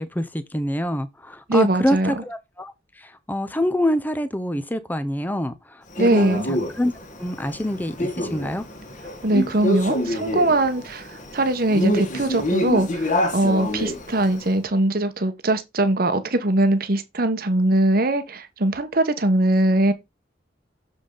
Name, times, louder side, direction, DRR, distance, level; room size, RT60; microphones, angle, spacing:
voice 1, 0.0-2.7 3.0-5.8 6.1-6.9 7.2-8.6, left 1 dB, 10° left, 0.6 m, -26 dB
voice 2, 1.5-2.1 6.0-6.5 9.2-11.1 11.3-19.9, right 1 dB, 50° right, 1.0 m, -21 dB
Male speech man speaking, 6.0-14.5, equal, 40° left, 1.6 m, -27 dB
7.0 x 5.4 x 3.9 m
head